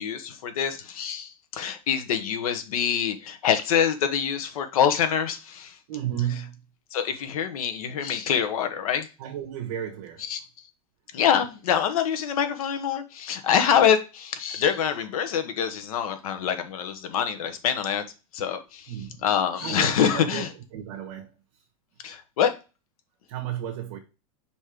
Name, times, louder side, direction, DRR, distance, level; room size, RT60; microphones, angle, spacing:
voice 1, 0.0-5.8 6.9-9.1 10.2-10.4 11.1-18.0 18.3-19.0 19.2-20.5 22.0-22.5, left 8 dB, 80° left, 1.4 m, -25 dB
voice 2, 5.9-6.6 9.2-10.3 18.9-19.2 19.6-20.5 20.7-21.3 23.3-24.0, right 11 dB, 55° right, 1.4 m, -33 dB
5.4 x 4.3 x 5.0 m
supercardioid pair, 160°, 18 cm